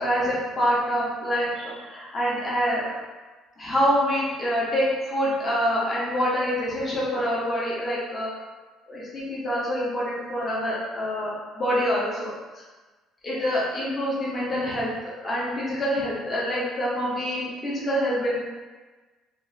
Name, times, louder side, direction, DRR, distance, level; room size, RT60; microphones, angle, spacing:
voice 1, 0.0-2.9 3.6-8.3 8.9-12.6 13.2-18.4, equal, 20° left, -7 dB, 0.7 m, -26 dB
2.6 x 2.4 x 3.2 m, 1.3 s
cardioid pair, 170°, 0 cm